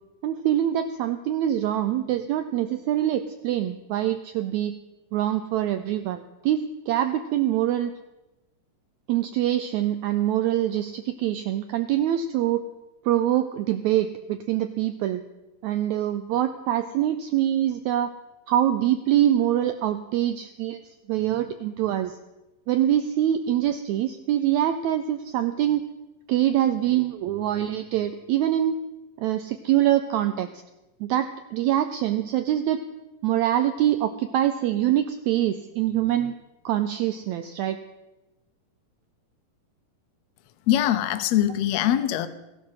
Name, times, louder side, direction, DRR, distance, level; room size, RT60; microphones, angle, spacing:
voice 1, 0.2-4.7 5.1-7.9 9.1-12.6 13.0-15.2 15.6-18.1 18.5-22.2 22.7-25.8 26.3-28.8 29.2-30.6 31.0-32.8 33.2-36.3 36.6-37.8, right 12 dB, 90° right, 9 dB, 1.6 m, -24 dB
voice 2, 40.7-42.3, left 12 dB, 80° left, 10 dB, 1.5 m, -22 dB
15.5 x 11.5 x 5.6 m, 1.0 s
omnidirectional pair, 4.0 m